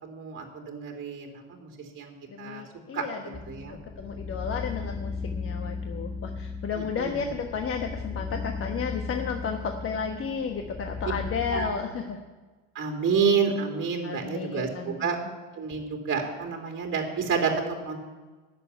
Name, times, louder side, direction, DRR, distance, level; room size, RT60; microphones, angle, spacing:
voice 1, 0.0-2.6 2.9-3.0 3.5-3.8 6.8-7.3 11.5-11.7 12.7-15.2 15.5-18.0, right 5 dB, 30° right, 1 dB, 2.9 m, -29 dB
voice 2, 2.3-3.4 3.7-12.2 14.0-15.1, left 6 dB, 35° left, 4 dB, 1.3 m, -33 dB
sound 1, 3.3-11.7, left 4 dB, ahead, 0.7 m, -36 dB
11.5 x 7.1 x 9.5 m, 1.3 s
hypercardioid pair, 100°, 38 cm